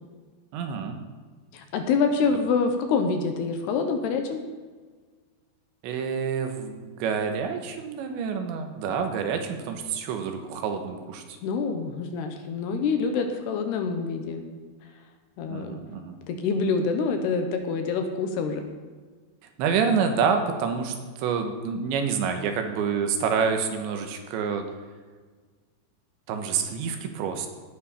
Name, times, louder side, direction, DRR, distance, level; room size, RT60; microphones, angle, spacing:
voice 1, 0.5-1.0 5.8-11.4 15.5-16.2 19.6-24.7 26.3-27.5, right 6 dB, 80° right, 5 dB, 3.5 m, -28 dB
voice 2, 1.5-4.4 11.4-14.4 15.4-15.8 16.3-18.7, left 5 dB, 75° left, 6 dB, 2.9 m, -26 dB
18.0 x 9.6 x 4.4 m, 1.5 s
omnidirectional pair, 5.2 m